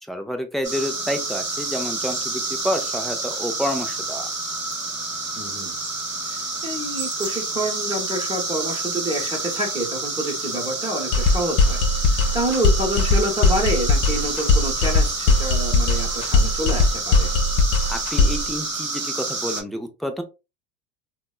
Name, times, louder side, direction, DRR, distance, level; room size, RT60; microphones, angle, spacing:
voice 1, 0.1-4.3 17.9-20.2, equal, ahead, 5 dB, 0.4 m, -29 dB
sound 1, 0.6-19.6, right 3 dB, 35° right, 1.2 m, -29 dB
voice 2, 5.4-5.8 6.2-17.3, right 1 dB, 15° right, 0 dB, 0.9 m, -28 dB
sound 2, 11.1-18.5, left 3 dB, 50° left, 0.5 m, -19 dB
3.3 x 2.1 x 2.3 m, 0.26 s
supercardioid pair, 120°, 32 cm